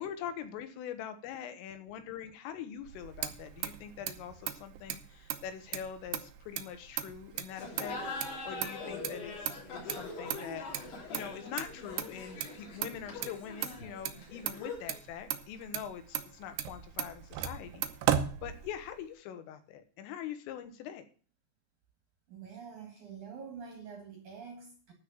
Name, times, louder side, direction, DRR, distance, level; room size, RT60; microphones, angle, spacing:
voice 1, 0.0-17.9 18.4-21.1, left 9 dB, 90° left, 3.7 m, -43 dB
Motor vehicle (road), 2.8-19.1, right 11 dB, 80° right, 2.5 m, -38 dB
Laughter, 7.5-15.0, left 3 dB, 60° left, 5.2 m, -43 dB
voice 2, 22.3-24.9, right 6 dB, 55° right, 2.3 m, -46 dB
12.5 x 4.9 x 8.6 m
omnidirectional pair, 5.7 m